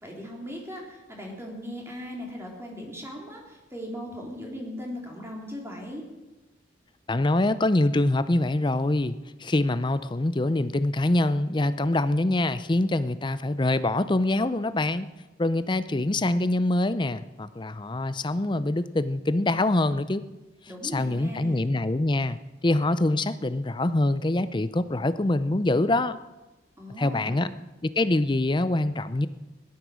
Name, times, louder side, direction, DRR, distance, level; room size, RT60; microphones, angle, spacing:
voice 1, 0.0-6.0 20.7-21.7 26.8-27.5, equal, 15° right, -1 dB, 3.4 m, -38 dB
voice 2, 7.1-15.1 15.4-20.2 20.9-26.2 27.0-27.5 27.8-29.3, left 2 dB, 25° left, 13 dB, 0.6 m, -25 dB
17.0 x 12.5 x 6.3 m, 1.1 s
head